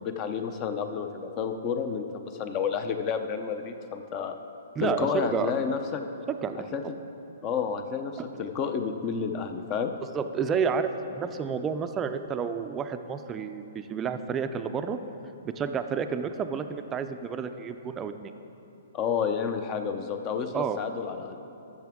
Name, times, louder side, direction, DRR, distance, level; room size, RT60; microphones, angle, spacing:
voice 1, 0.0-4.3 4.8-6.0 6.7-6.8 7.4-9.9 18.9-21.4, left 6 dB, 30° left, 7 dB, 0.6 m, -30 dB
voice 2, 4.8-5.5 6.3-6.7 10.1-15.0 15.4-18.3 20.5-20.8, right 6 dB, 20° right, 8 dB, 0.4 m, -30 dB
13.5 x 6.7 x 3.6 m, 2.9 s
hypercardioid pair, 140°, 0 cm